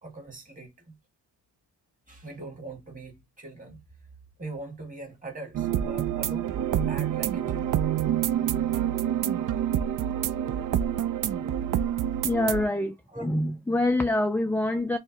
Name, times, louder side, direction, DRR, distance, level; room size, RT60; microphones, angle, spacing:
voice 1, 0.0-1.0 2.1-3.8 4.4-7.8 11.7-11.9 13.1-13.2, right 2 dB, 20° right, 1.7 m, -42 dB
sound 1, 5.5-12.6, right 10 dB, 55° right, 0.5 m, -27 dB
voice 2, 12.2-13.0 13.2-15.0, left 1 dB, 5° left, 0.3 m, -25 dB
4.5 x 3.1 x 2.8 m
wide cardioid pair, 145°, 40 cm